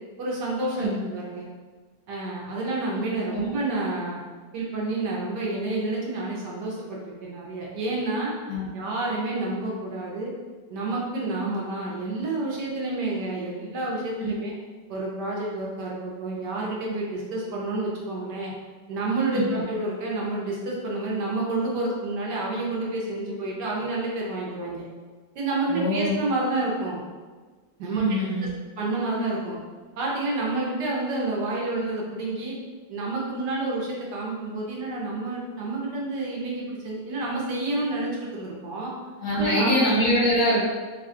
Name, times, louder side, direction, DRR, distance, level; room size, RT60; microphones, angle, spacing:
voice 1, 0.2-1.5 2.1-4.2 4.5-8.3 8.7-10.3 10.7-14.5 14.9-18.5 18.9-24.8 25.3-27.0 27.8-28.1 28.4-28.5 28.8-29.6 30.0-32.6 32.9-38.9 39.3-39.9, right 2 dB, 70° right, -3 dB, 1.3 m, -29 dB
voice 2, 25.7-26.1 27.9-28.5 39.1-40.7, equal, 60° left, -6 dB, 1.4 m, -24 dB
4.0 x 2.3 x 3.6 m, 1.4 s
omnidirectional pair, 2.0 m